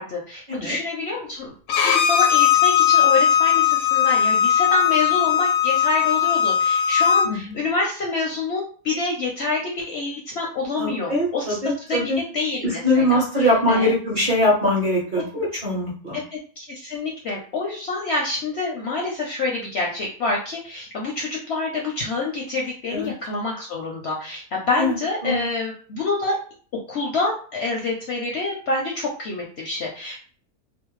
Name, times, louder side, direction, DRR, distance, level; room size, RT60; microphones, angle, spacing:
voice 1, 0.0-11.6 11.9-13.2 13.7-13.9 16.1-26.4 26.9-30.2, left 3 dB, 65° left, -2 dB, 0.7 m, -27 dB
Bowed string instrument, 1.7-7.3, left 9 dB, 90° left, 1.1 m, -18 dB
voice 2, 7.2-7.5 10.8-12.2 12.6-16.2 22.9-23.1 24.8-24.9 25.2-25.4, left 1 dB, 45° right, -5 dB, 0.7 m, -22 dB
2.6 x 2.0 x 3.0 m, 0.42 s
omnidirectional pair, 1.6 m